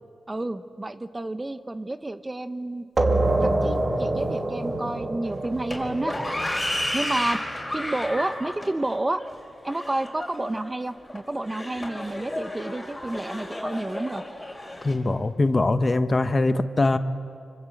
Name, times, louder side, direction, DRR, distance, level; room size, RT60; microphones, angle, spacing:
voice 1, 0.3-2.9 3.2-6.2 6.9-7.4 7.7-9.2 9.6-14.2, right 2 dB, 20° right, 11 dB, 1.0 m, -30 dB
sound 1, 3.0-8.3, right 2 dB, 40° right, 2.7 m, -27 dB
sound 2, 5.3-14.9, left 1 dB, 15° left, 5.1 m, -33 dB
voice 2, 14.8-17.0, left 2 dB, 30° left, 10 dB, 1.2 m, -22 dB
26.0 x 25.0 x 8.0 m, 2.4 s
cardioid pair, 75°, 0 cm